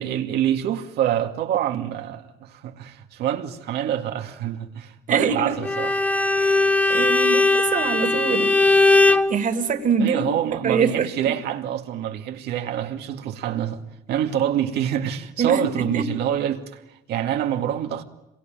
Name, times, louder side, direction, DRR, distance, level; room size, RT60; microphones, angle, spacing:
voice 1, 0.0-5.9 10.0-13.8 14.1-18.0, right 10 dB, 80° right, 2.3 m, -26 dB
voice 2, 5.1-5.5 6.4-8.5 9.3-10.3 10.6-11.1 15.4-16.0, right 6 dB, 50° right, 2.8 m, -24 dB
Bowed string instrument, 5.6-9.3, left 2 dB, 10° left, 1.2 m, -19 dB
27.0 x 23.0 x 9.2 m
cardioid pair, 110°, 17 cm